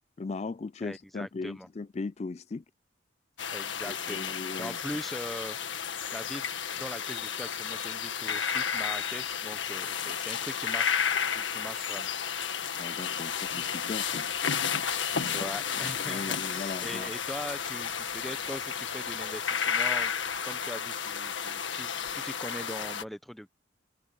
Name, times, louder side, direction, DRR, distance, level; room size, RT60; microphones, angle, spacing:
voice 1, 0.2-2.6 3.9-4.8 12.7-14.3 15.1-17.1, left 3 dB, 35° left, 0.3 m, -38 dB
voice 2, 0.8-1.7 3.5-5.8 6.1-6.5 6.8-11.0 11.3-12.1 15.2-20.1 20.4-23.6, equal, ahead, 0.8 m, -41 dB
sound 1, 3.4-23.0, left 7 dB, 75° left, 1.8 m, -32 dB
sound 2, 13.1-19.4, right 3 dB, 70° right, 4.1 m, -57 dB
head